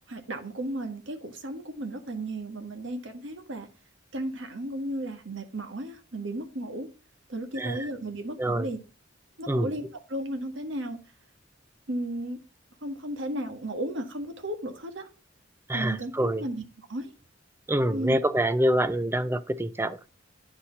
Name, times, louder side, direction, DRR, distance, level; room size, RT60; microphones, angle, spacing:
voice 1, 0.1-3.7 4.1-6.9 7.3-8.8 9.4-11.0 11.9-12.4 12.8-15.1 15.7-16.6 16.9-17.1 17.9-18.2, right 1 dB, 65° right, 1.5 m, -34 dB
voice 2, 7.6-7.9 8.4-8.7 9.5-9.7 15.7-16.4 17.7-20.1, right 1 dB, 10° right, 0.5 m, -26 dB
9.6 x 4.3 x 5.6 m
head